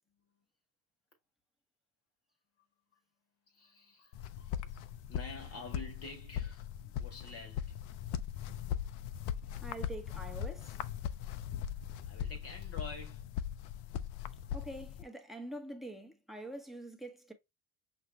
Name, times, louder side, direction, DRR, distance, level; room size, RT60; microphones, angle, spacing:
voice 1, 3.5-7.8 12.1-13.2, left 3 dB, 30° left, 1.1 m, -49 dB
sound 1, 4.1-15.0, left 9 dB, 55° left, 0.6 m, -40 dB
voice 2, 9.6-10.8 14.5-17.3, right 1 dB, ahead, 0.9 m, -45 dB
5.8 x 2.4 x 3.0 m
hypercardioid pair, 80°, 47 cm